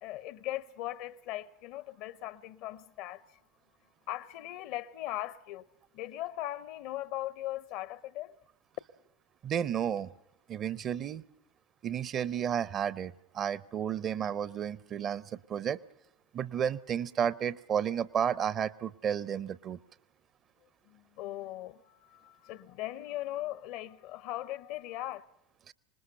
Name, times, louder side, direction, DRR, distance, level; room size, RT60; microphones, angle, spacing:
voice 1, 0.0-3.4 4.1-5.7 5.9-8.4 20.9-25.2, left 14 dB, 55° left, 0.7 m, -39 dB
voice 2, 9.4-10.1 10.5-11.2 11.8-15.8 16.3-19.8 25.7-25.8, right 8 dB, 35° right, 0.7 m, -32 dB
25.5 x 20.5 x 5.6 m
figure-of-eight pair, 75°, 0 cm